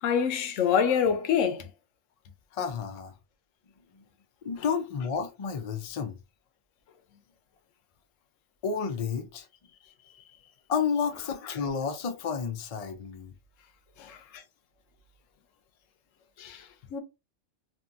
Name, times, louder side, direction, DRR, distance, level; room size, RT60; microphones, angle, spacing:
voice 1, 0.0-1.7 14.0-14.1 16.4-17.0, left 7 dB, 80° left, 1.0 m, -26 dB
voice 2, 2.5-3.2 3.9-4.0 4.4-6.2 8.6-9.5 10.7-13.3 14.1-14.4, left 6 dB, 55° left, 0.4 m, -31 dB
2.7 x 2.6 x 2.4 m
omnidirectional pair, 1.3 m